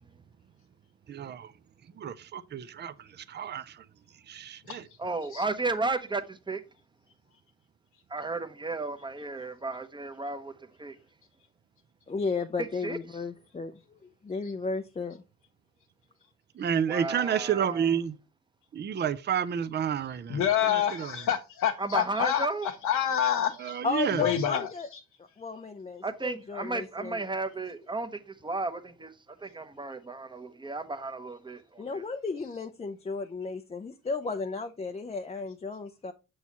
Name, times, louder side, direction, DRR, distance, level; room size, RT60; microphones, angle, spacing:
voice 1, 1.1-1.5 2.0-3.8 4.3-4.8 16.5-18.2 18.7-21.2 23.6-24.3, right 8 dB, 35° right, 0.5 m, -30 dB
voice 2, 5.0-6.6 8.1-11.0 12.6-13.0 16.9-17.9 21.8-22.7 26.0-32.0, right 3 dB, 15° right, 0.9 m, -34 dB
voice 3, 12.1-15.2 23.8-24.9 25.4-27.2 31.8-36.1, left 4 dB, 20° left, 0.5 m, -34 dB
voice 4, 20.3-23.8 24.2-25.0, left 9 dB, 70° left, 0.8 m, -28 dB
7.0 x 6.4 x 2.9 m
cardioid pair, 90°, 30 cm